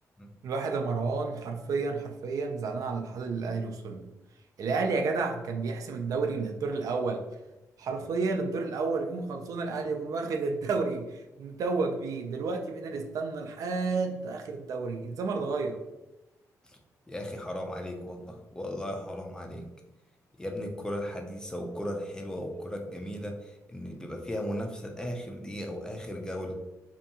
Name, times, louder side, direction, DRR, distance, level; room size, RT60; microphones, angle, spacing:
voice 1, 0.4-4.1 4.6-7.3 7.8-15.8, right 4 dB, 65° right, 3 dB, 0.3 m, -31 dB
voice 2, 17.1-19.7 20.4-26.5, equal, 10° left, 2 dB, 0.3 m, -36 dB
2.6 x 2.2 x 2.7 m, 0.98 s
wide cardioid pair, 145°, 6 cm